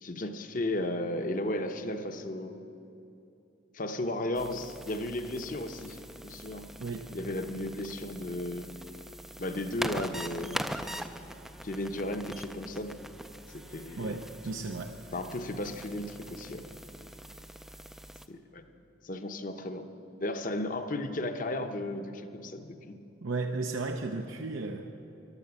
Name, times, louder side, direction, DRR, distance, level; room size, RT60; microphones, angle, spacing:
voice 1, 0.0-2.5 3.7-6.7 7.1-8.7 9.4-10.6 11.6-13.0 13.5-14.1 15.1-16.6 18.3-18.6 19.0-19.8 20.2-23.0, left 1 dB, 40° left, 7 dB, 0.8 m, -34 dB
sound 1, 4.3-18.3, equal, ahead, 0.4 m, -42 dB
voice 2, 6.8-7.1 14.0-15.0 23.2-24.9, right 3 dB, 80° right, 4 dB, 0.7 m, -34 dB
14.0 x 11.5 x 7.0 m, 2.9 s
head